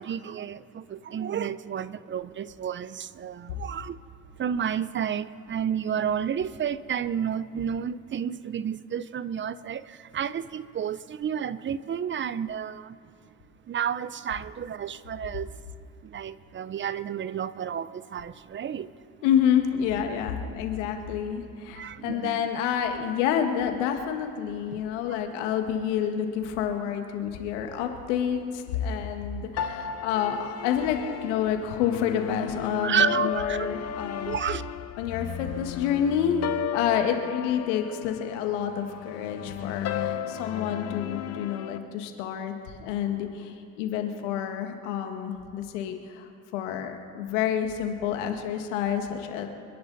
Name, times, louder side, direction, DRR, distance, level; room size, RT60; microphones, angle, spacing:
voice 1, 0.0-4.0 4.4-13.0 13.7-15.5 16.0-18.9 21.8-22.4 24.7-24.8 32.8-33.7 34.3-34.6, right 8 dB, 35° right, 16 dB, 0.6 m, -31 dB
voice 2, 19.2-34.4 35.0-49.5, left 8 dB, 90° left, 5 dB, 1.8 m, -28 dB
sound 1, 29.6-41.8, left 9 dB, 45° left, 0.9 m, -34 dB
26.5 x 10.5 x 4.1 m, 2.4 s
supercardioid pair, 85°, 35 cm